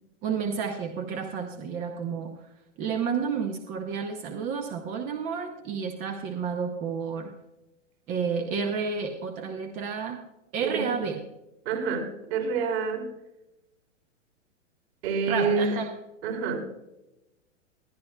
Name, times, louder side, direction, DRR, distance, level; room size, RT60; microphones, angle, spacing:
voice 1, 0.2-2.4 2.8-7.3 8.1-10.2 10.5-11.3 15.3-15.9, right 6 dB, 20° right, 5 dB, 0.6 m, -31 dB
voice 2, 10.6-10.9 11.7-13.1 15.0-15.7 16.2-16.6, right 5 dB, 55° right, 2 dB, 3.6 m, -27 dB
20.5 x 11.0 x 2.2 m, 0.91 s
hypercardioid pair, 155°, 38 cm